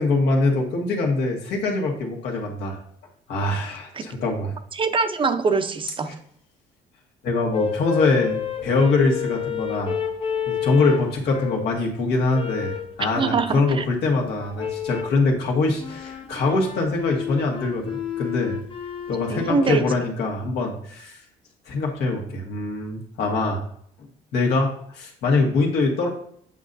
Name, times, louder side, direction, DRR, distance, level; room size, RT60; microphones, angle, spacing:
voice 1, 0.0-2.8 3.3-4.5 6.1-6.2 7.2-9.9 10.5-18.6 19.1-21.2 21.7-23.6 24.0-26.1, left 3 dB, 75° left, 1 dB, 1.6 m, -23 dB
voice 2, 4.7-6.1 13.2-13.8 19.3-19.9, right 4 dB, 30° right, 9 dB, 0.6 m, -23 dB
sound 1, 7.5-11.7 12.3-12.9 14.5-15.2 15.8-19.7, left 8 dB, 30° left, 0.8 m, -30 dB
8.3 x 5.4 x 2.6 m, 0.65 s
cardioid pair, 110°, 17 cm